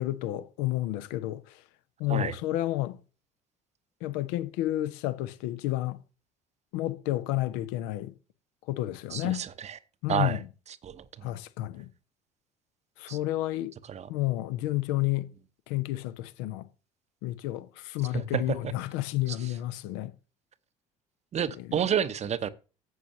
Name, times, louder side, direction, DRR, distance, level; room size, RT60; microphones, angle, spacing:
voice 1, 0.0-1.6 2.0-3.0 4.0-6.0 6.7-8.1 8.7-9.4 10.0-10.4 11.2-11.9 13.0-13.8 14.1-15.3 15.7-16.7 17.2-20.1 21.6-21.8, left 16 dB, 60° left, 0.9 m, -31 dB
voice 2, 9.1-9.8 10.1-10.4 10.8-11.3 13.1-13.2 13.9-14.1 18.1-18.7 19.3-19.4 21.3-22.5, right 8 dB, 35° right, 0.9 m, -30 dB
14.0 x 8.2 x 2.8 m
figure-of-eight pair, 55°, 20 cm